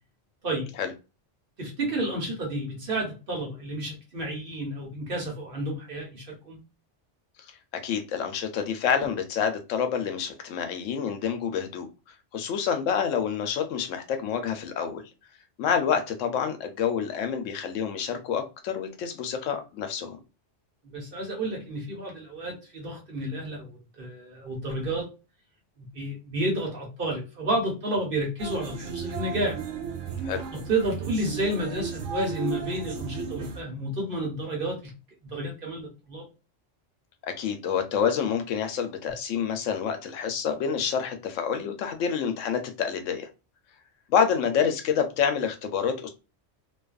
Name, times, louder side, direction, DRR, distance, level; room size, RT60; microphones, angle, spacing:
voice 1, 1.6-6.6 20.8-25.1 25.8-29.6 30.5-34.9 35.2-36.2, right 1 dB, 50° right, -1 dB, 1.1 m, -31 dB
voice 2, 7.8-11.9 12.3-15.0 15.6-20.2 30.2-30.4 37.3-43.3 44.1-46.1, left 7 dB, 85° left, 6 dB, 0.9 m, -28 dB
sound 1, 28.4-33.6, right 5 dB, 90° right, 1.0 m, -35 dB
2.6 x 2.3 x 2.3 m, 0.30 s
omnidirectional pair, 1.3 m